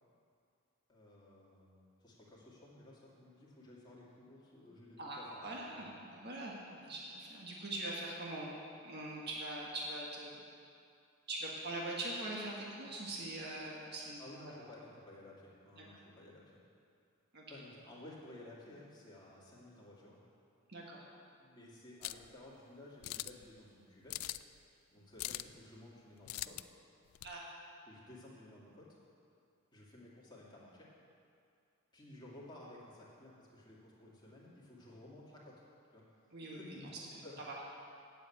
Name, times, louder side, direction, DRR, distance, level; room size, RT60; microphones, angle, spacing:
voice 1, 0.9-6.0 14.2-16.6 17.5-20.2 21.4-24.3 24.9-26.7 27.9-29.0 29.7-30.9 31.9-35.6 35.9-36.0 36.5-37.4, left 1 dB, 20° left, -6 dB, 2.4 m, -55 dB
voice 2, 5.0-8.5 8.8-10.4 11.3-14.2 17.3-17.4 20.7-21.0 27.2-27.5 36.3-36.8 37.1-37.2, right 1 dB, 50° right, -3 dB, 1.6 m, -42 dB
sound 1, 22.0-22.3 23.0-23.4 24.1-24.6 25.2-25.6 26.3-26.6 27.1-27.3, left 16 dB, 85° left, 0.3 m, -41 dB
9.0 x 7.7 x 8.6 m, 2.5 s
head